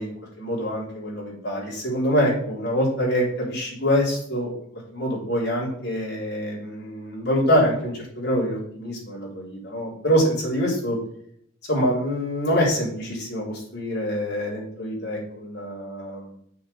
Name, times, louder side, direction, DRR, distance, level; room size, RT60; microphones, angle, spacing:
voice 1, 0.0-4.5 4.9-11.0 11.7-16.3, equal, 55° left, -4 dB, 3.9 m, -25 dB
6.9 x 5.0 x 6.8 m, 0.67 s
head